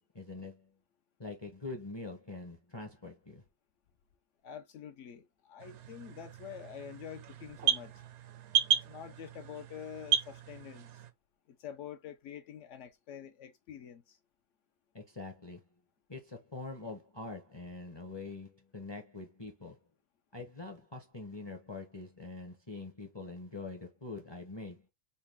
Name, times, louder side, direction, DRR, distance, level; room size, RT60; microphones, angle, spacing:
voice 1, 0.1-0.7 1.2-3.4 14.9-15.6 16.1-19.8 20.3-24.8, left 3 dB, 30° left, 0.5 m, -44 dB
voice 2, 4.4-8.0 8.7-10.9 11.5-14.2, left 9 dB, 70° left, 0.9 m, -47 dB
sound 1, 5.6-11.1, right 9 dB, 70° right, 0.8 m, -34 dB
4.0 x 2.2 x 3.3 m
omnidirectional pair, 1.3 m